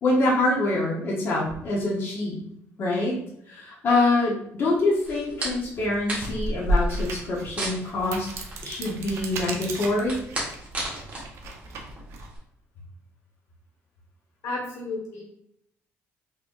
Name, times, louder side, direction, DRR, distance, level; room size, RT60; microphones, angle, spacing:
voice 1, 0.0-2.4 2.8-3.2 3.5-8.3 8.6-10.2, left 2 dB, 45° left, -5 dB, 0.9 m, -25 dB
sound 1, 5.0-12.4, equal, 25° right, 1.4 m, -31 dB
sound 2, 5.0-5.1 5.7-12.3, right 4 dB, 60° right, 0.6 m, -39 dB
voice 2, 14.4-15.2, left 2 dB, 85° left, -2 dB, 1.5 m, -32 dB
3.8 x 3.3 x 2.5 m, 0.73 s
cardioid pair, 130°, 5 cm